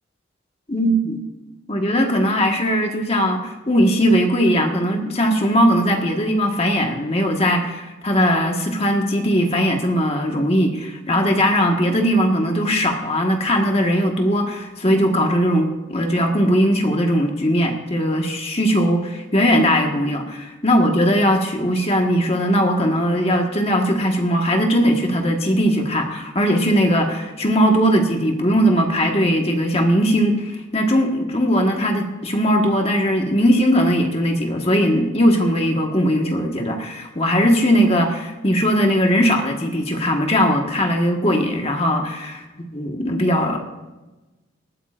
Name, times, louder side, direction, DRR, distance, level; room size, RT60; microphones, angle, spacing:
voice 1, 0.7-1.2 1.7-42.3 42.7-43.6, equal, 30° left, 2 dB, 1.5 m, -19 dB
19.5 x 13.0 x 2.5 m, 1.1 s
head